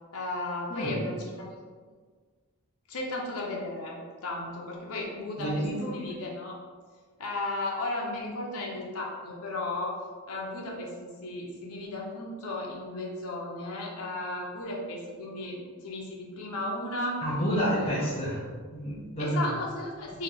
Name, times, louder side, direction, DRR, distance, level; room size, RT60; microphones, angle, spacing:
voice 1, 0.1-1.4 2.9-6.6 7.2-10.0 10.3-17.2 17.5-18.0 19.2-20.2, left 2 dB, 75° left, -2 dB, 0.7 m, -35 dB
voice 2, 5.4-6.0 17.2-18.5 18.7-19.4, equal, 30° left, -8 dB, 0.7 m, -29 dB
3.2 x 2.8 x 3.9 m, 1.5 s
head